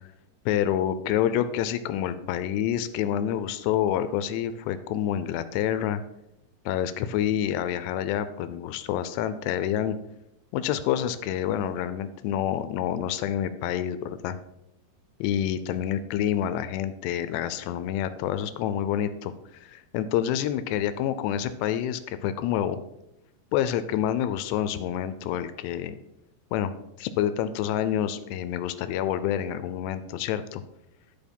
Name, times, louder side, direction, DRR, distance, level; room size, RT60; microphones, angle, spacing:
voice 1, 0.5-6.0 6.7-10.0 10.5-14.4 15.2-22.8 23.5-26.0 26.5-26.7 27.0-30.6, left 10 dB, 80° left, 12 dB, 2.6 m, -28 dB
11.5 x 4.5 x 5.2 m, 0.86 s
omnidirectional pair, 5.1 m